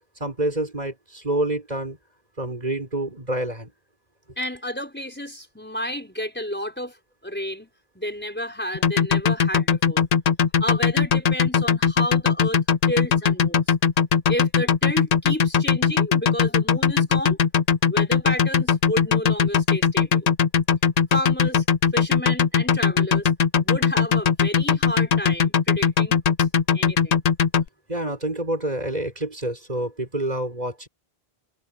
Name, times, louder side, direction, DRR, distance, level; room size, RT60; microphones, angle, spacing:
voice 1, 0.2-2.0 2.4-3.7 27.9-30.9, right 1 dB, 40° right, 6.2 m, -27 dB
voice 2, 4.4-7.0 7.2-7.7 7.9-10.1 10.6-13.6 14.3-17.4 17.9-20.3 21.1-21.6 21.9-23.3 23.6-26.5 26.7-27.2, equal, 10° left, 5.1 m, -31 dB
sound 1, 8.7-27.6, left 6 dB, 50° left, 0.6 m, -19 dB
omnidirectional pair, 1.0 m